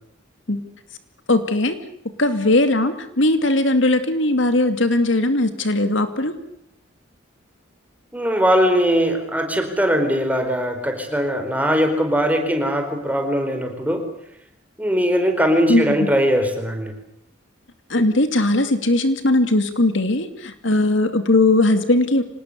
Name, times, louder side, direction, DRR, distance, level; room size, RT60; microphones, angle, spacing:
voice 1, 1.3-1.8 2.2-6.3 15.7-16.1 17.9-22.2, left 2 dB, 70° left, 9 dB, 2.5 m, -19 dB
voice 2, 8.1-14.0 14.8-16.9, equal, 10° right, 5 dB, 4.6 m, -20 dB
26.0 x 19.5 x 8.2 m, 0.75 s
head